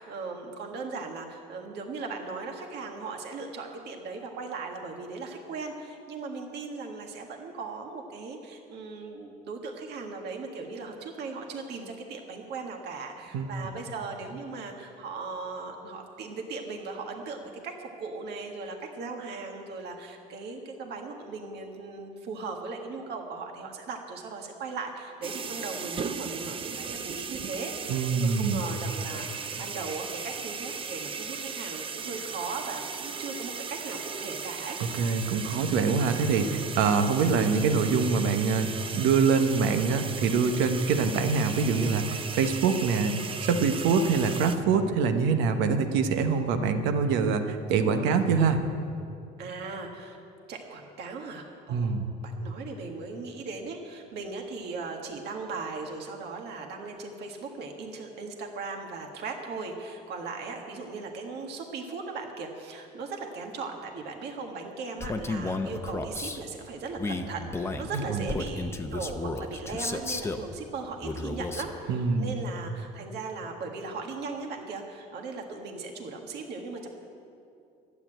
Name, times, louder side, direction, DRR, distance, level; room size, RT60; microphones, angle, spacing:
voice 1, 0.0-34.8 49.4-50.2 50.5-76.9, right 4 dB, 60° right, 2 dB, 1.7 m, -38 dB
sound 1, 25.2-44.6, right 5 dB, 30° right, 0.6 m, -37 dB
voice 2, 27.9-28.6 34.8-48.6 51.7-52.0 68.1-68.2 71.9-72.3, right 5 dB, 80° right, 7 dB, 1.1 m, -25 dB
Male speech man speaking, 65.0-66.4 67.0-70.5 71.0-71.7, left 3 dB, 15° left, 0.7 m, -33 dB
12.0 x 8.2 x 9.0 m, 2.6 s
cardioid pair, 110°, 19 cm